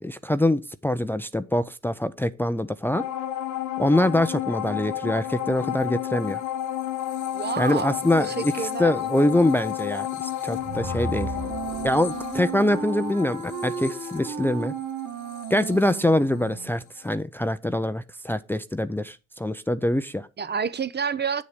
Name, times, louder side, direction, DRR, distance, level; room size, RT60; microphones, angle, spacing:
voice 1, 0.0-3.0 3.8-6.4 7.6-11.3 11.8-14.7 15.5-20.3, left 1 dB, 5° left, 0.6 m, -24 dB
sound 1, 2.9-16.6 17.0-17.1, left 12 dB, 85° left, 1.6 m, -32 dB
voice 2, 7.3-9.0 20.4-21.4, right 6 dB, 35° right, 0.8 m, -29 dB
sound 2, 10.3-12.4, right 2 dB, 10° right, 1.3 m, -35 dB
Wind instrument woodwind instrument, 10.6-16.8, right 7 dB, 80° right, 1.9 m, -35 dB
9.4 x 7.0 x 5.1 m
cardioid pair, 90°, 30 cm